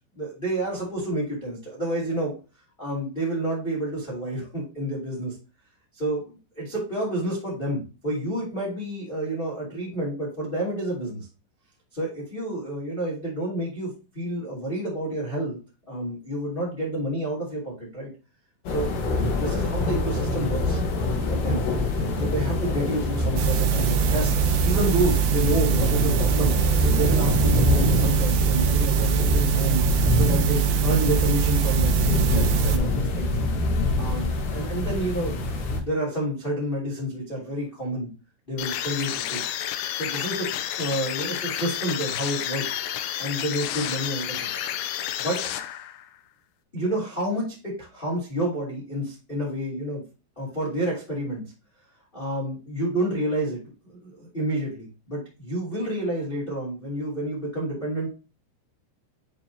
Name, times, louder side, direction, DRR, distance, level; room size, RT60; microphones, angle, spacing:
voice 1, 0.1-2.3 2.8-5.3 5.9-11.3 11.9-15.6 15.9-18.1 18.7-21.6 22.1-26.5 26.8-29.8 30.1-33.3 34.0-35.4 35.6-38.1 38.5-39.4 39.9-42.7 43.2-44.5 45.2-45.5 46.7-50.0 50.3-51.4 52.1-58.1, right 1 dB, 20° left, -5 dB, 1.6 m, -29 dB
sound 1, 18.7-35.8, left 2 dB, 65° left, 3.5 m, -25 dB
sound 2, 23.4-32.8, right 10 dB, 80° right, 2.6 m, -23 dB
sound 3, 38.6-46.1, left 11 dB, 90° left, 2.5 m, -30 dB
10.5 x 3.8 x 2.8 m, 0.33 s
omnidirectional pair, 5.7 m